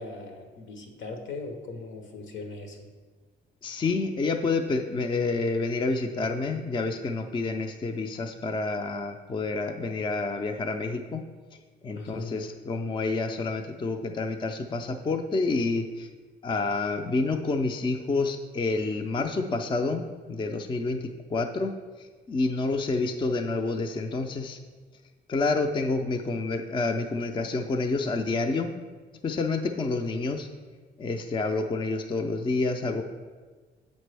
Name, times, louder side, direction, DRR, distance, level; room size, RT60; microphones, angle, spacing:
voice 1, 0.0-2.9 12.0-12.5, left 3 dB, 75° left, 4 dB, 0.9 m, -39 dB
voice 2, 3.6-11.2 11.8-16.1 16.4-21.7 22.0-24.6 25.3-28.7 29.2-30.5 31.0-33.0, left 3 dB, 25° left, 6 dB, 0.4 m, -28 dB
7.3 x 5.2 x 3.3 m, 1.4 s
cardioid pair, 90°, 20 cm